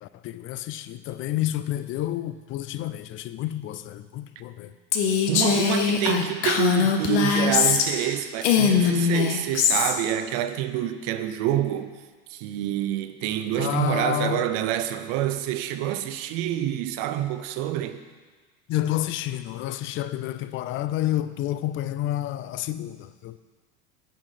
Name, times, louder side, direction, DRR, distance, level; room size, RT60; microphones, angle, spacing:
voice 1, 0.0-4.7 13.6-14.5 18.7-23.4, left 13 dB, 40° left, 0.4 m, -29 dB
Female speech woman speaking, 4.9-8.1 8.4-9.9, left 7 dB, 85° left, 0.9 m, -21 dB
voice 2, 5.2-11.9 12.3-18.0, right 12 dB, 65° right, 0.6 m, -27 dB
8.5 x 5.8 x 5.0 m
supercardioid pair, 120°, 33 cm